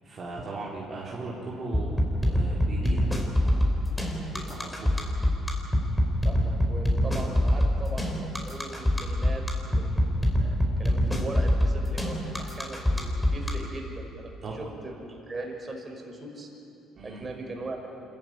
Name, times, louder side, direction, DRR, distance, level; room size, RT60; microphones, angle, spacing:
voice 1, 0.0-3.1 3.4-4.9 14.4-14.5 16.9-17.2, right 2 dB, 45° right, -5 dB, 4.3 m, -38 dB
sound 1, 1.7-13.5, equal, 10° left, 4.8 m, -23 dB
voice 2, 6.2-9.4 9.7-16.5 17.0-17.9, right 2 dB, 30° right, 2 dB, 5.6 m, -39 dB
26.0 x 14.5 x 9.7 m, 2.8 s
supercardioid pair, 70°, 0 cm